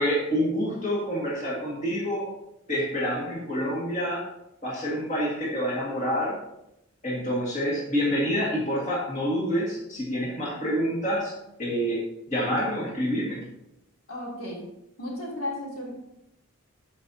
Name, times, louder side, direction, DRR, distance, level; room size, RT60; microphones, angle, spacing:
voice 1, 0.0-2.3 2.7-4.2 4.6-6.4 7.0-11.3 11.6-12.0 12.3-13.4, equal, 35° left, -5 dB, 1.9 m, -27 dB
voice 2, 14.1-14.7 15.0-15.9, left 1 dB, 80° left, -4 dB, 3.2 m, -34 dB
13.0 x 5.3 x 2.8 m, 0.84 s
head